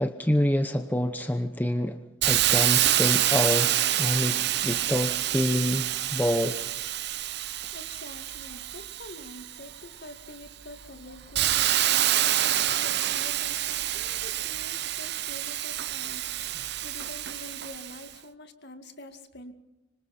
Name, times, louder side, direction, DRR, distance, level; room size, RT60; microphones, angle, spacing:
voice 1, 0.0-2.0 2.3-6.6, left 1 dB, 10° left, 8 dB, 0.8 m, -27 dB
Hiss, 2.2-9.8 10.3-18.0, right 12 dB, 50° right, 0.7 m, -27 dB
voice 2, 7.7-12.3 12.6-19.5, left 1 dB, 50° left, 7 dB, 2.1 m, -46 dB
26.0 x 25.0 x 4.3 m, 0.95 s
head